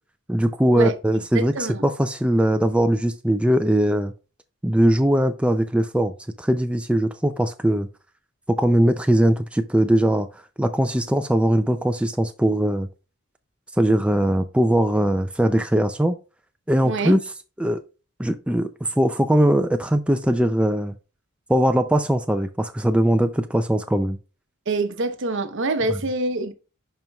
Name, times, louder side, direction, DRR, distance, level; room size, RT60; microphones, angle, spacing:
voice 1, 0.3-4.1 4.6-7.9 8.5-10.3 10.6-12.9 13.8-16.2 16.7-17.2 17.6-17.8 18.2-20.9 21.5-24.2, right 1 dB, 5° right, 0.4 m, -20 dB
voice 2, 1.3-1.8 16.8-17.2 24.7-26.5, right 2 dB, 60° right, 0.9 m, -25 dB
10.5 x 4.5 x 2.3 m
head